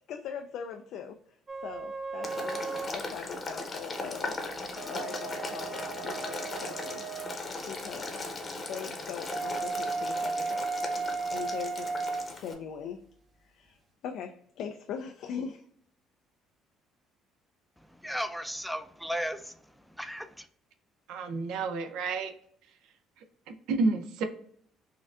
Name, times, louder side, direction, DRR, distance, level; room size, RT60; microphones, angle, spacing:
voice 1, 0.1-2.6 2.9-7.1 7.7-8.2 8.5-11.0 11.3-11.9 12.3-13.0 13.4-13.8 14.0-15.7, left 7 dB, 70° left, 0.3 m, -41 dB
sound 1, 1.5-3.0 4.6-7.4 9.3-12.3, right 4 dB, 40° right, 0.7 m, -35 dB
Boiling, 2.2-12.5, left 2 dB, 35° left, 0.8 m, -38 dB
voice 2, 17.9-19.5 20.0-20.5, equal, ahead, 0.4 m, -35 dB
voice 3, 21.1-22.3 23.5-24.2, right 3 dB, 75° right, 0.5 m, -30 dB
4.2 x 2.5 x 2.4 m
supercardioid pair, 90°, 0 cm